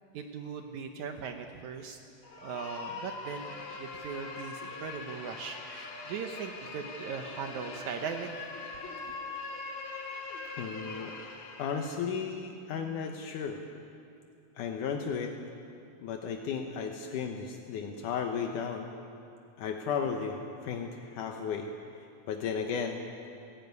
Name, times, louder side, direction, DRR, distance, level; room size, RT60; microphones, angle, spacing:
voice 1, 0.1-2.0 2.4-8.4 9.1-9.2, right 6 dB, 70° right, 5 dB, 2.2 m, -39 dB
sound 1, 2.2-12.1, left 3 dB, 55° left, 2.9 m, -42 dB
voice 2, 10.6-11.1 11.6-13.6 14.6-15.3 16.0-18.9 19.6-23.1, left 6 dB, 75° left, 3 dB, 2.5 m, -34 dB
18.0 x 16.5 x 9.5 m, 2.6 s
omnidirectional pair, 3.7 m